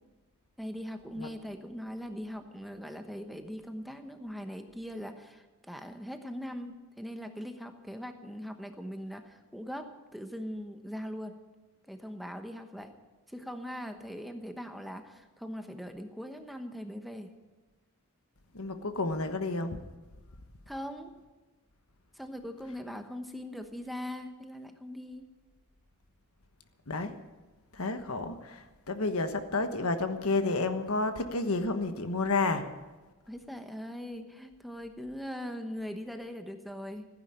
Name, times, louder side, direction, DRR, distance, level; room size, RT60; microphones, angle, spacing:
voice 1, 0.6-11.4 11.9-12.9 13.3-17.3 20.7-21.1 22.1-25.3 33.3-37.1, equal, ahead, 6 dB, 1.0 m, -41 dB
voice 2, 18.5-19.8 26.9-27.2 27.7-32.7, left 3 dB, 70° left, 8 dB, 1.3 m, -30 dB
15.5 x 10.5 x 8.8 m, 1.2 s
head